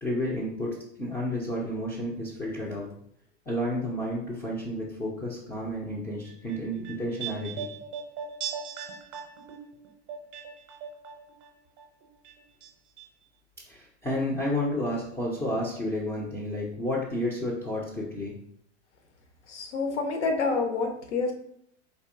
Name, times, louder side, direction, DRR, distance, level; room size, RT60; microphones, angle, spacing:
voice 1, 0.0-2.9 3.5-7.7 13.7-18.3, left 1 dB, 10° left, -4 dB, 0.3 m, -31 dB
sound 1, 6.3-11.5 11.8-12.7 13.0-13.1, right 7 dB, 40° right, 0.6 m, -39 dB
voice 2, 19.5-21.3, left 4 dB, 75° left, 4 dB, 0.8 m, -28 dB
3.6 x 2.6 x 2.5 m, 0.69 s
hypercardioid pair, 100°, 36 cm